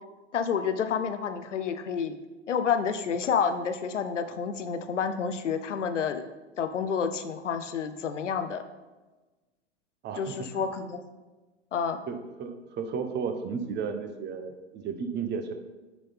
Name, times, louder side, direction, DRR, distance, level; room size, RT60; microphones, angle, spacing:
voice 1, 0.3-2.2 2.5-6.3 6.6-8.6 10.2-11.0 11.7-12.0, left 6 dB, 90° left, 9 dB, 0.6 m, -29 dB
voice 2, 10.0-10.6 12.1-15.5, right 6 dB, 30° right, 7 dB, 0.8 m, -34 dB
9.1 x 3.9 x 3.4 m, 1.2 s
hypercardioid pair, 95°, 35 cm